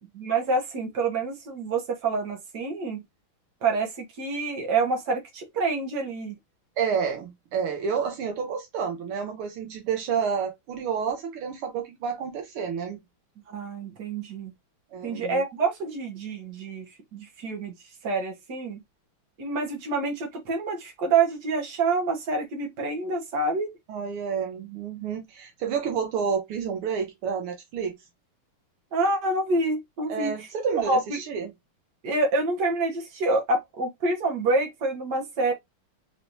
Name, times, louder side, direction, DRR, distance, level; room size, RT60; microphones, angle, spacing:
voice 1, 0.2-3.0 3.6-3.9 4.2-6.3 13.5-14.5 15.0-17.8 18.0-18.8 19.4-23.7 28.9-30.3 30.7-31.2 32.0-35.5, right 3 dB, 55° right, 1.8 m, -27 dB
voice 2, 6.8-13.0 14.9-15.4 23.9-28.0 30.1-31.5, right 6 dB, 80° right, 1.8 m, -29 dB
4.6 x 3.3 x 2.6 m
omnidirectional pair, 2.4 m